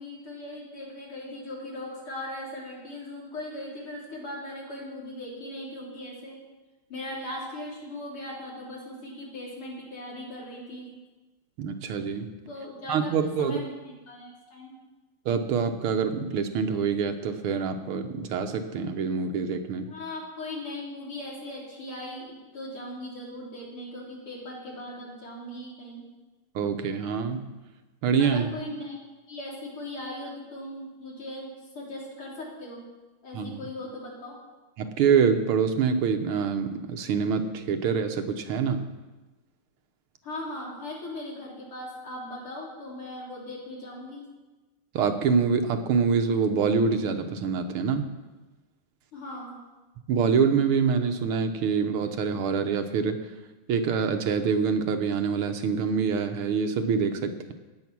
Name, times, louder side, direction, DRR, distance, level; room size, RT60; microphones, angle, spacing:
voice 1, 0.0-6.4 6.9-10.9 12.5-14.7 19.9-26.1 28.2-29.0 29.3-32.8 33.2-34.4 40.2-44.3 49.1-49.5, left 1 dB, 80° left, -4 dB, 4.5 m, -39 dB
voice 2, 11.6-12.3 12.9-13.6 15.3-19.9 26.6-27.5 28.0-28.5 33.3-33.6 34.8-38.9 44.9-48.1 50.1-53.2 53.7-57.5, right 6 dB, 80° right, 7 dB, 1.9 m, -25 dB
15.5 x 9.7 x 6.1 m, 1.2 s
omnidirectional pair, 2.3 m